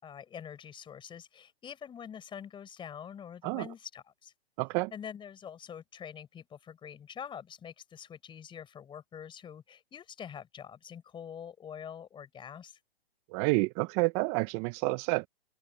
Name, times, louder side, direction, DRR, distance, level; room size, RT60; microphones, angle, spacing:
voice 1, 0.0-4.3 4.9-12.8, left 8 dB, 15° left, 4.5 m, -45 dB
voice 2, 4.6-4.9 13.3-15.3, right 26 dB, 25° right, 0.8 m, -29 dB
open air
hypercardioid pair, 130°, 31 cm